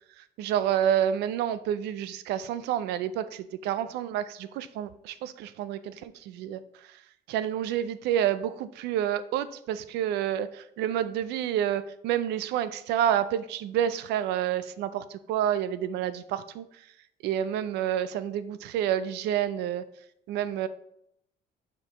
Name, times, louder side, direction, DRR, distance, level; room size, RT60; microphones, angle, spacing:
voice 1, 0.2-6.9 7.3-16.6 17.2-19.8 20.3-20.7, right 10 dB, 85° right, 14 dB, 0.5 m, -29 dB
7.5 x 4.5 x 3.0 m, 0.76 s
cardioid pair, 110°, 17 cm